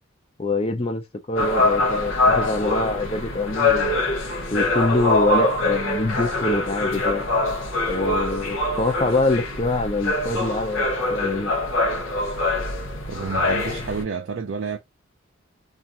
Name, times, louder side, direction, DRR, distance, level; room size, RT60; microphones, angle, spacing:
voice 1, 0.4-4.0 4.5-7.2 7.9-10.8 11.1-11.5, left 2 dB, 30° left, 0.5 m, -25 dB
sound 1, 1.4-14.0, left 2 dB, 80° left, 0.7 m, -24 dB
voice 2, 13.1-14.8, right 5 dB, 65° right, 0.4 m, -30 dB
2.5 x 2.4 x 2.8 m
head